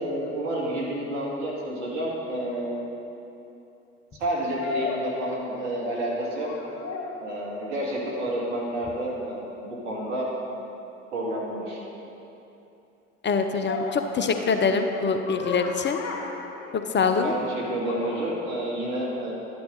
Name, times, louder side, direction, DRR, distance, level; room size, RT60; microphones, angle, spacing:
voice 1, 0.0-2.9 4.2-6.5 7.2-10.6 11.1-11.8 17.2-19.3, right 1 dB, 80° right, -5 dB, 2.5 m, -30 dB
sound 1, 2.2-2.3 4.6-5.9 6.2-7.3 10.0-10.2 13.7-17.1 17.8-18.4, left 4 dB, 50° left, 2.3 m, -35 dB
voice 2, 13.2-16.0 16.7-17.3, left 5 dB, 30° left, 6 dB, 0.9 m, -24 dB
12.5 x 10.5 x 4.0 m, 2.9 s
figure-of-eight pair, 60°, 36 cm